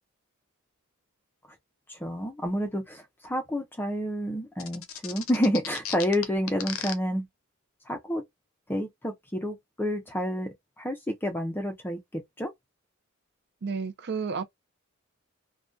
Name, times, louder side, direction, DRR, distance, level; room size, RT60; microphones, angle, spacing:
voice 1, 1.9-7.3 7.9-8.2 8.7-10.5 10.8-12.5, equal, 10° left, 0.5 m, -29 dB
sound 1, 4.6-6.9, left 9 dB, 70° left, 0.5 m, -35 dB
voice 2, 13.6-14.4, right 5 dB, 55° right, 0.5 m, -31 dB
2.5 x 2.2 x 2.2 m
head